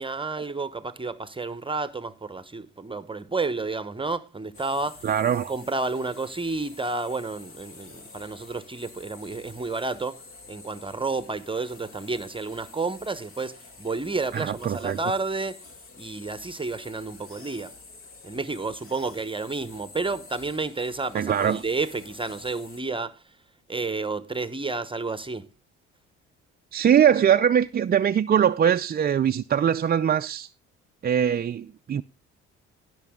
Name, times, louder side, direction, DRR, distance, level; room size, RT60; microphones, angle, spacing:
voice 1, 0.0-5.1 5.5-10.2 10.5-15.6 16.0-17.7 18.2-23.2 23.7-25.5, right 3 dB, 15° right, 0.9 m, -31 dB
sound 1, 4.5-22.8, left 4 dB, 45° left, 2.2 m, -48 dB
voice 2, 5.0-5.5 14.3-15.0 21.1-21.6 26.7-30.5 31.0-32.0, right 9 dB, 30° right, 0.5 m, -22 dB
17.0 x 6.1 x 3.6 m
supercardioid pair, 65°, 30 cm